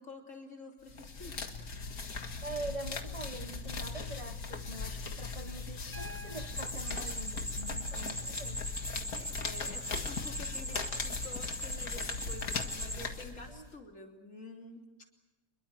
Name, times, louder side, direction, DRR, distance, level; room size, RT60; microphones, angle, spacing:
voice 1, 0.0-1.4 9.2-14.8, left 2 dB, 60° left, 2 dB, 3.7 m, -49 dB
sound 1, 0.9-13.7, left 4 dB, 85° left, 2.3 m, -39 dB
voice 2, 2.4-8.7 13.5-13.7, right 2 dB, 30° right, 7 dB, 0.8 m, -44 dB
Piano, 5.9-9.9 11.5-11.6, left 1 dB, 10° left, 1.8 m, -54 dB
sound 2, 6.6-13.0, equal, 10° right, 1.6 m, -40 dB
27.0 x 22.0 x 7.7 m, 1.1 s
omnidirectional pair, 1.5 m